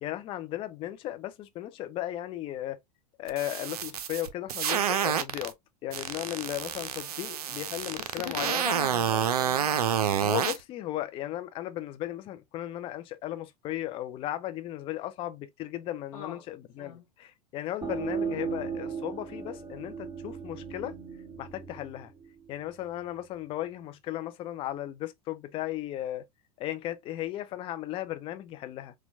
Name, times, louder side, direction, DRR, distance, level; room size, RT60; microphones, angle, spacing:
voice 1, 0.0-2.8 3.2-5.5 5.8-8.7 10.2-20.9 21.4-22.1 22.5-26.2 26.6-28.9, left 13 dB, 25° left, 0.4 m, -36 dB
sound 1, 3.3-5.5 5.9-10.6, right 9 dB, 65° right, 0.5 m, -28 dB
voice 2, 8.0-9.8 16.1-16.5 16.8-17.0, left 7 dB, 65° left, 0.7 m, -40 dB
sound 2, 17.8-23.2, right 6 dB, 15° right, 1.5 m, -37 dB
4.2 x 2.2 x 2.5 m
figure-of-eight pair, 90°, 21 cm